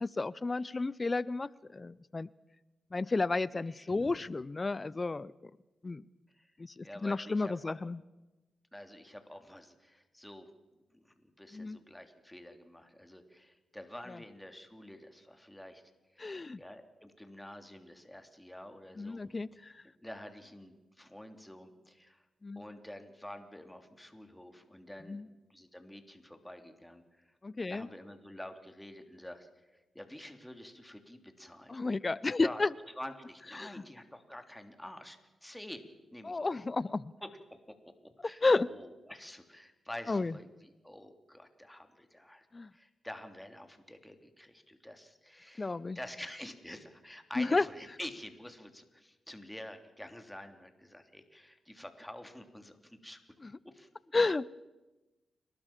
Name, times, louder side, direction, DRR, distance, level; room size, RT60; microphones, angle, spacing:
voice 1, 0.0-2.3 2.9-5.3 5.8-6.1 6.6-8.0 11.5-11.8 14.1-14.2 16.2-16.6 19.0-19.8 22.4-22.6 25.1-25.3 27.4-27.9 31.7-32.7 33.6-33.8 36.2-37.1 38.4-38.7 40.1-40.3 42.5-42.7 45.6-46.0 47.4-47.6 53.4-53.5 54.1-54.5, left 3 dB, 35° left, 21 dB, 0.6 m, -32 dB
voice 2, 3.7-4.2 6.3-6.5 6.8-7.7 8.7-10.5 10.9-15.8 16.1-19.2 20.0-22.2 22.5-25.2 25.5-27.4 27.7-31.8 32.4-36.5 37.2-37.6 38.0-42.5 42.7-53.2 53.6-53.9, left 1 dB, 10° left, 7 dB, 3.2 m, -48 dB
30.0 x 12.5 x 7.4 m, 1.1 s
hypercardioid pair, 40°, 0 cm